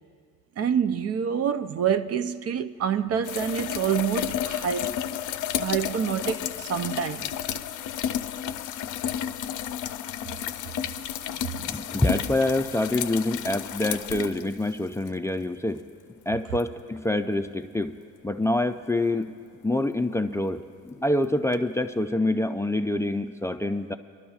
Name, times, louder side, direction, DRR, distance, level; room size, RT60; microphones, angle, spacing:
voice 1, 0.6-5.0 5.6-7.3, right 8 dB, 55° right, 0.5 m, -27 dB
sound 1, 3.2-15.1 16.6-16.7 21.5-21.6, left 10 dB, 85° left, 0.5 m, -32 dB
voice 2, 11.5-15.8 16.3-17.9 18.2-19.3 19.6-23.9, left 1 dB, 10° left, 0.4 m, -26 dB
29.5 x 12.5 x 2.4 m
cardioid pair, 90°, 30 cm